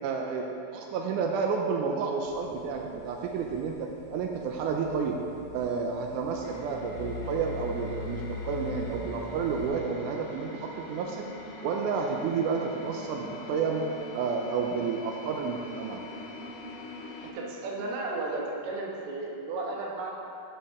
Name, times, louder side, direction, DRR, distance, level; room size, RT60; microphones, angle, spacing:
voice 1, 0.0-5.2 5.5-11.3 11.6-13.9 14.1-16.0, right 5 dB, 85° right, 1 dB, 1.8 m, -30 dB
sound 1, 2.2-9.7, left 4 dB, 55° left, 1.2 m, -41 dB
sound 2, 6.4-17.3, left 3 dB, 85° left, 2.7 m, -44 dB
voice 2, 17.2-20.1, right 2 dB, 65° right, -2 dB, 2.1 m, -34 dB
9.9 x 7.6 x 3.6 m, 2.7 s
omnidirectional pair, 4.2 m